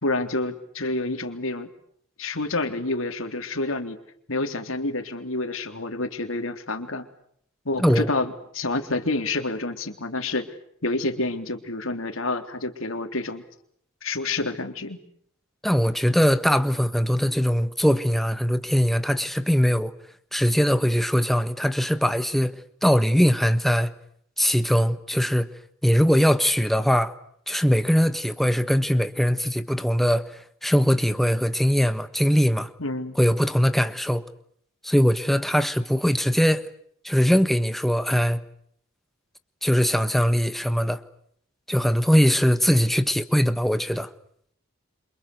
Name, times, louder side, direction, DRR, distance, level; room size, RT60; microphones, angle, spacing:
voice 1, 0.0-1.7 2.2-4.0 4.3-7.1 7.7-10.5 10.8-13.4 14.0-15.0 32.8-33.2, left 2 dB, 75° left, 3.6 m, -28 dB
voice 2, 7.8-8.1 15.6-19.9 20.3-23.9 24.4-25.5 25.8-27.1 27.5-32.7 33.1-34.2 34.8-36.7 37.0-38.4 39.6-41.0 41.7-44.1, equal, ahead, 1.4 m, -21 dB
29.0 x 27.5 x 6.9 m
head